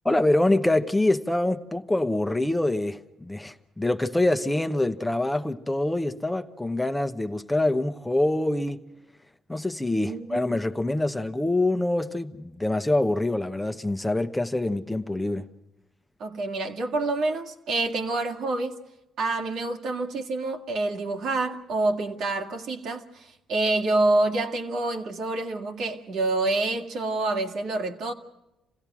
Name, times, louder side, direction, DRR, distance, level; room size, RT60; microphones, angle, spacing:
voice 1, 0.0-8.8 9.5-15.5, left 2 dB, 10° left, 1.0 m, -25 dB
voice 2, 10.0-10.5 16.2-18.8 19.2-28.1, right 2 dB, 75° right, 2.2 m, -27 dB
27.5 x 16.5 x 6.1 m
cardioid pair, 90°, 0 cm